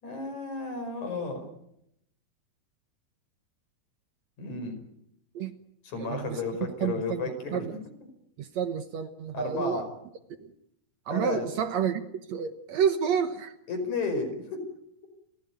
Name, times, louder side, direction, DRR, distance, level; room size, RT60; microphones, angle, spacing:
voice 1, 0.0-1.5 4.4-4.7 5.8-7.8 9.3-9.9 11.1-11.5 13.7-14.3, left 3 dB, 50° left, 7 dB, 6.3 m, -32 dB
voice 2, 6.0-6.4 6.8-7.7 8.4-9.8 10.4-10.5 11.1-12.0 12.3-13.5, right 8 dB, 65° right, 9 dB, 1.9 m, -29 dB
30.0 x 15.0 x 9.4 m, 0.79 s
omnidirectional pair, 4.3 m